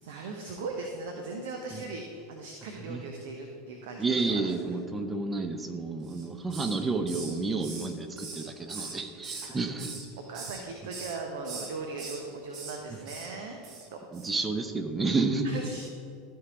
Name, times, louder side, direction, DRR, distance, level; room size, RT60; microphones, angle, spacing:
voice 1, 0.0-4.5 8.7-9.0 9.4-9.6 10.2-14.3 15.4-15.8, right 3 dB, 60° right, 3 dB, 0.8 m, -39 dB
voice 2, 4.0-10.0 14.1-15.5, right 3 dB, 15° right, 7 dB, 0.8 m, -30 dB
Hiss, 6.0-6.8 7.1-9.5 9.8-10.6 10.9-11.2 11.4-12.2 12.5-12.8 13.1-13.3 13.6-13.9 14.1-14.3, right 4 dB, 40° right, 1.4 m, -41 dB
12.5 x 4.6 x 5.0 m, 2.5 s
figure-of-eight pair, 80°, 0 cm